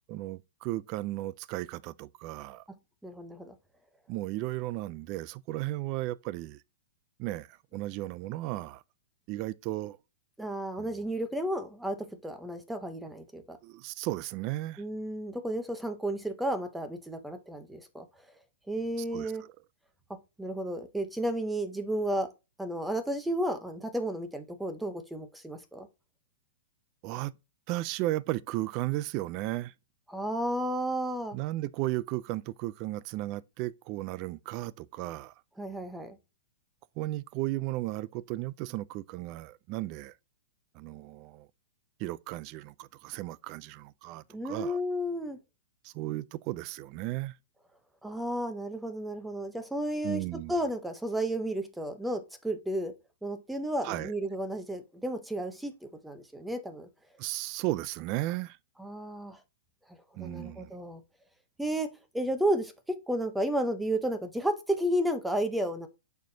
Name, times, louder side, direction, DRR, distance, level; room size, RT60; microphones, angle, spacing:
voice 1, 0.1-2.6 4.1-6.6 7.2-8.8 9.3-10.0 10.8-10.9 13.6-14.8 19.1-19.3 27.0-27.3 27.7-29.7 31.3-35.3 37.0-40.1 40.7-41.5 42.0-44.8 45.8-47.4 50.0-50.5 53.8-54.1 57.2-58.6 60.2-60.7, right 17 dB, 30° right, 0.4 m, -35 dB
voice 2, 3.0-3.5 10.4-13.6 14.8-18.1 18.7-19.4 20.4-22.3 22.6-25.9 30.1-31.4 35.6-36.2 44.3-45.4 48.0-50.2 50.5-52.9 53.2-56.9 58.8-59.4 59.9-61.0 61.6-65.9, right 1 dB, 5° right, 0.7 m, -32 dB
9.2 x 4.3 x 2.7 m
hypercardioid pair, 165°, 0 cm